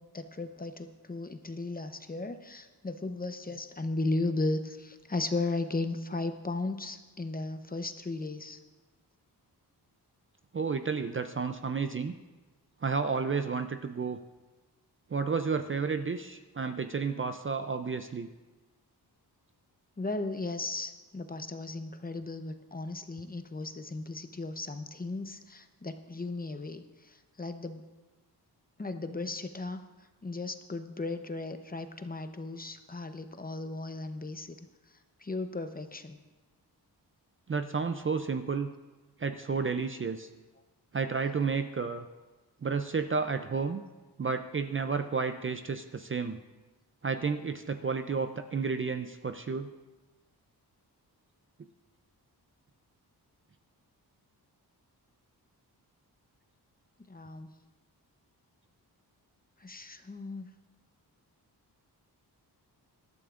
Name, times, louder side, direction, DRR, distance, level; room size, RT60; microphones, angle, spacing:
voice 1, 0.0-8.6 20.0-27.8 28.8-29.8 30.2-34.6 35.2-36.2 57.1-57.5 59.6-60.5, left 2 dB, 20° left, 8 dB, 0.8 m, -36 dB
voice 2, 10.5-12.2 12.8-14.2 15.1-18.3 37.5-38.7 39.2-40.3 40.9-42.1 42.6-43.8 44.2-46.4 47.0-49.7, right 5 dB, 30° right, 8 dB, 0.5 m, -31 dB
20.0 x 12.0 x 2.5 m, 1.2 s
wide cardioid pair, 90°, 40 cm